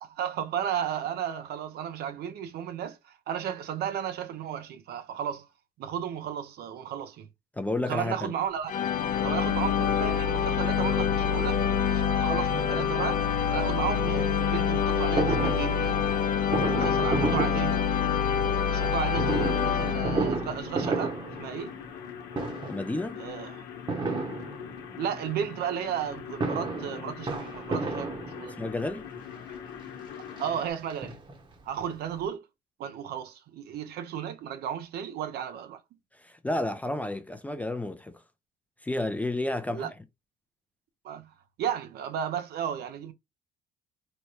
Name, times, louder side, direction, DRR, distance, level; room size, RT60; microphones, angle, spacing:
voice 1, 0.0-5.5 5.8-7.3 7.9-8.7 9.2-16.2 16.5-17.8 18.7-21.8 23.2-23.7 25.0-28.6 30.4-31.2 31.6-32.4 32.8-35.8 39.7-39.9 41.0-41.3 41.6-43.1, right 9 dB, 70° right, 0.7 m, -34 dB
voice 2, 7.5-8.3 22.7-23.2 28.6-29.1 36.2-38.2 38.8-39.9, left 2 dB, 10° left, 0.4 m, -31 dB
sound 1, 8.7-20.6, left 7 dB, 50° left, 0.6 m, -26 dB
Fireworks, 15.2-18.4 19.1-22.1 22.3-22.9 23.9-25.0 26.1-28.8 29.5-29.6 29.9-30.0 30.4-31.6 31.9-32.0 32.2-32.3, right 3 dB, 30° right, 1.0 m, -32 dB
sound 2, 19.0-30.7, left 8 dB, 80° left, 0.9 m, -42 dB
3.2 x 2.2 x 4.2 m
cardioid pair, 110°, 17 cm